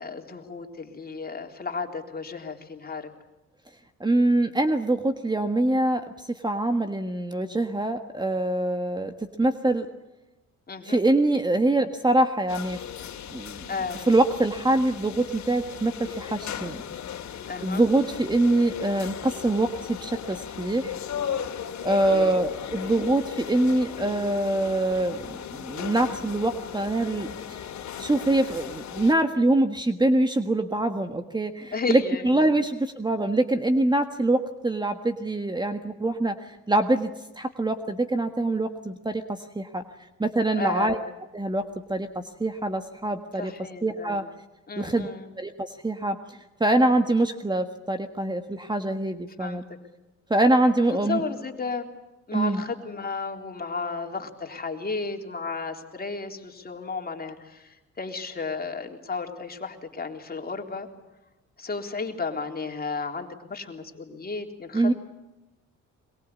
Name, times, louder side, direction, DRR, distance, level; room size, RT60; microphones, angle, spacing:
voice 1, 0.0-3.1 10.7-11.0 13.7-14.1 17.5-17.8 21.9-22.4 31.7-32.2 40.6-41.0 43.3-44.3 44.7-45.3 49.4-49.6 50.9-51.9 52.3-60.9 61.6-64.9, left 4 dB, 30° left, 3 dB, 3.7 m, -33 dB
voice 2, 4.0-9.1 9.4-9.9 10.8-12.8 13.3-13.7 14.1-16.8 17.6-21.0 21.8-27.3 28.0-37.1 37.3-39.8 40.2-41.0 41.3-41.6 41.9-43.5 43.8-44.2 44.8-45.1 45.4-46.2 46.6-49.6 50.3-51.2 52.3-52.6 64.7-64.9, right 2 dB, 15° right, 7 dB, 1.5 m, -24 dB
sound 1, 12.5-29.1, left 8 dB, 65° left, 2.7 m, -36 dB
22.5 x 22.5 x 8.4 m, 1.0 s
cardioid pair, 90°, 30 cm